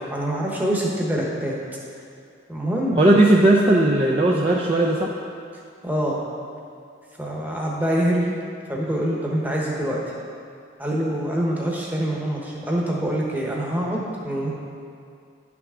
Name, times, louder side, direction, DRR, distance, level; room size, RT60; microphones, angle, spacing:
voice 1, 0.1-1.6 2.5-3.0 5.8-6.2 7.2-8.3 8.7-10.0 10.8-14.5, right 1 dB, 10° right, -3 dB, 1.0 m, -25 dB
voice 2, 3.0-5.1, right 1 dB, 30° right, -3 dB, 0.5 m, -17 dB
11.0 x 6.0 x 3.7 m, 2.4 s
head